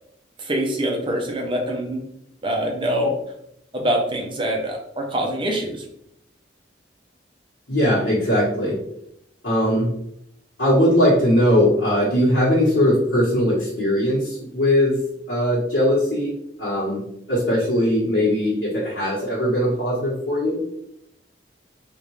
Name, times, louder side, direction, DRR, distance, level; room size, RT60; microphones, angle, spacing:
voice 1, 0.4-2.0 2.4-3.1 3.7-5.8, right 1 dB, 30° right, 2 dB, 0.6 m, -24 dB
voice 2, 7.7-8.8 9.4-9.9 10.6-14.9 15.3-16.3 16.6-17.0 17.3-20.6, left 1 dB, 80° left, -10 dB, 1.1 m, -20 dB
3.5 x 2.5 x 3.0 m, 0.75 s
head